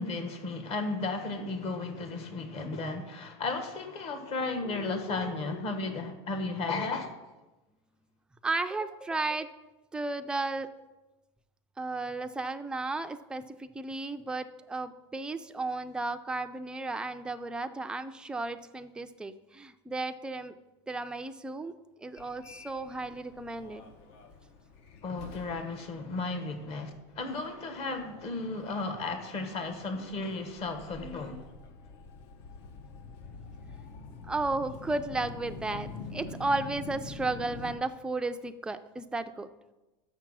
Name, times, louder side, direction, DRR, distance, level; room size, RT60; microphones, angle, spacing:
voice 1, 0.0-7.1 25.0-26.9 27.2-31.5, left 3 dB, 40° left, 7 dB, 1.2 m, -34 dB
voice 2, 8.4-9.5 9.9-10.7 11.8-20.5 20.9-21.7 22.0-23.8 34.3-39.5, right 3 dB, 5° right, 8 dB, 0.4 m, -34 dB
Subway metro underground, 22.2-37.7, left 4 dB, 65° left, 0.8 m, -46 dB
6.4 x 5.8 x 6.1 m, 1.1 s
supercardioid pair, 125°, 15 cm